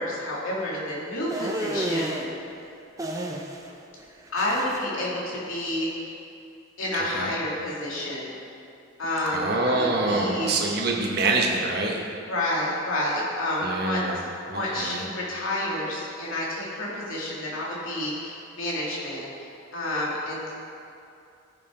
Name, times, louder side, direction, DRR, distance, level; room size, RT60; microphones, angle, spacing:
voice 1, 0.0-2.2 4.3-6.1 6.8-8.3 9.0-10.6 12.3-14.0 14.5-20.5, left 1 dB, 90° left, -6 dB, 2.6 m, -29 dB
sound 1, 1.3-2.3 3.0-3.7 4.0-4.8, right 1 dB, 15° right, 0.7 m, -31 dB
voice 2, 9.3-12.1 13.6-14.2 14.5-15.1, right 2 dB, 50° right, 0 dB, 1.3 m, -25 dB
14.5 x 6.7 x 3.9 m, 2.6 s
head